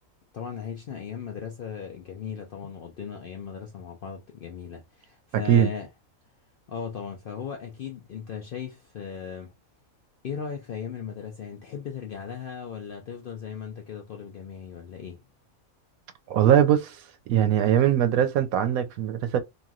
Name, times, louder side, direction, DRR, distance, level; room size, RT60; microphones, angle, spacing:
voice 1, 0.3-5.9 6.7-9.5 10.2-15.2, left 7 dB, 65° left, 0.5 m, -37 dB
voice 2, 16.3-17.0 17.3-19.4, right 10 dB, 80° right, 1.0 m, -21 dB
3.0 x 2.5 x 2.4 m
omnidirectional pair, 1.5 m